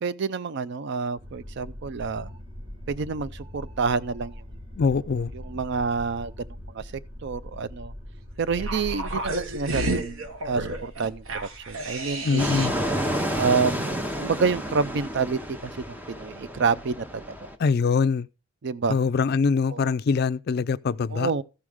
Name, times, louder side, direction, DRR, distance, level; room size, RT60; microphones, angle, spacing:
voice 1, 0.0-2.3 2.9-4.4 5.3-6.9 7.2-7.9 8.4-12.4 13.3-17.4 18.6-19.0 19.7-19.9 21.1-21.4, right 5 dB, 55° right, 0.5 m, -28 dB
sound 1, 1.2-12.9, equal, 25° right, 1.7 m, -41 dB
voice 2, 4.8-5.3 12.2-12.7 17.6-18.3 18.9-21.3, left 5 dB, 50° left, 0.4 m, -23 dB
sound 2, 8.5-12.9 13.2-13.3, right 2 dB, 80° right, 1.2 m, -32 dB
Fixed-wing aircraft airplane, 12.4-17.5, equal, 10° right, 0.8 m, -30 dB
14.0 x 6.3 x 3.6 m
head